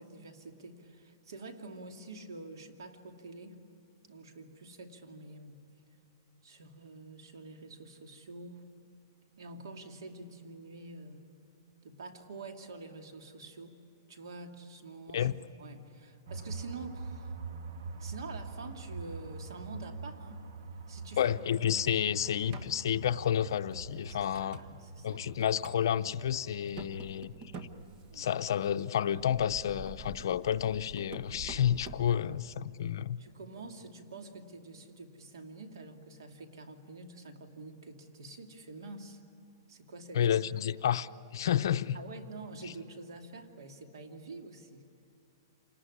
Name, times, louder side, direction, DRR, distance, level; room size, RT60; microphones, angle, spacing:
voice 1, 0.0-3.6 4.1-5.7 6.4-8.6 9.4-11.2 11.8-13.8 14.1-17.4 18.0-20.4 20.9-21.3 22.4-22.7 23.9-25.3 28.1-28.3 32.1-32.3 33.2-39.2 39.7-40.2 41.9-44.8, right 3 dB, 90° right, 2.6 m, -47 dB
sound 1, 16.3-29.2, right 3 dB, 60° right, 1.5 m, -45 dB
voice 2, 21.2-24.6 25.0-27.3 28.1-33.2 40.1-42.0, left 9 dB, 70° left, 0.7 m, -30 dB
sound 2, 22.5-22.8 23.4-24.7 25.1-25.8 26.1-26.2 26.5-28.5 29.1-32.1, right 2 dB, 30° right, 1.4 m, -47 dB
27.5 x 19.0 x 10.0 m
hypercardioid pair, 160°, 2 cm